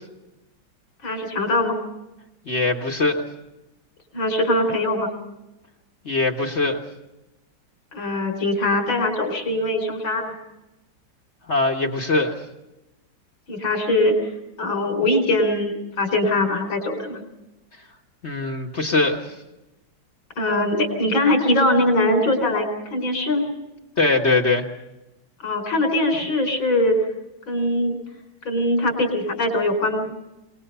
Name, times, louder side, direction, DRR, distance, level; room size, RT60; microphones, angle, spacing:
voice 1, 1.0-1.8 4.1-5.1 7.9-10.3 13.5-14.2 14.6-17.2 20.4-23.4 25.4-27.0 27.5-28.0 28.4-30.1, left 1 dB, 85° left, 4 dB, 4.9 m, -22 dB
voice 2, 2.5-3.2 6.0-6.8 11.5-12.3 18.2-19.3 24.0-24.7, left 3 dB, 40° left, 3 dB, 1.5 m, -21 dB
25.5 x 20.0 x 5.6 m, 0.96 s
omnidirectional pair, 2.1 m